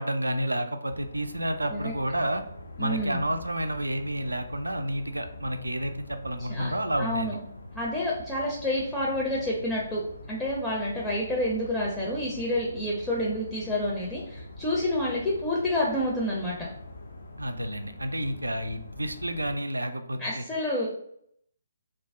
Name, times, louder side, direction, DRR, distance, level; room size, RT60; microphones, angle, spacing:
voice 1, 0.0-2.4 2.8-7.3 17.4-20.4, right 1 dB, 80° right, 7 dB, 0.3 m, -30 dB
sound 1, 0.9-19.6, left 2 dB, 60° left, 0.4 m, -44 dB
voice 2, 2.8-3.2 6.5-6.7 7.0-7.4 7.7-10.0 10.3-16.6 20.2-20.9, left 1 dB, 10° left, -5 dB, 0.5 m, -28 dB
2.4 x 2.0 x 3.5 m, 0.70 s
figure-of-eight pair, 140°, 0 cm